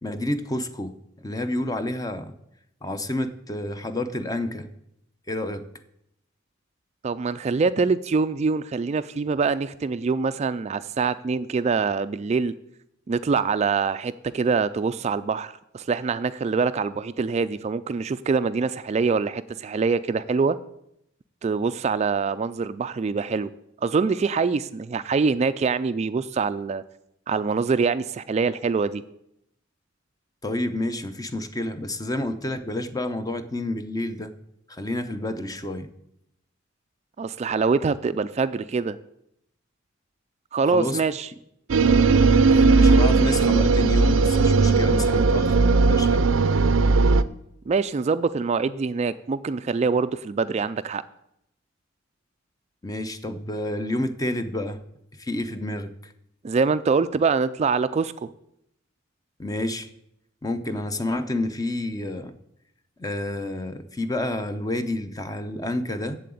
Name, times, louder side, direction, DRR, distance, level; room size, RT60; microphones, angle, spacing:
voice 1, 0.0-2.3 2.8-4.7 5.3-5.6 30.4-34.3 34.7-35.9 40.7-41.0 42.5-46.2 52.8-54.8 55.2-56.1 59.4-59.9 60.4-62.4 63.0-66.2, left 1 dB, 20° left, 10 dB, 0.7 m, -29 dB
voice 2, 7.0-12.5 13.1-20.6 21.4-23.5 23.8-26.8 27.3-29.0 37.2-39.0 40.5-41.3 47.7-51.0 56.4-58.3, right 4 dB, 35° right, 12 dB, 0.3 m, -24 dB
sound 1, 41.7-47.2, right 4 dB, 85° right, 0.5 m, -18 dB
7.7 x 7.6 x 8.5 m, 0.78 s
head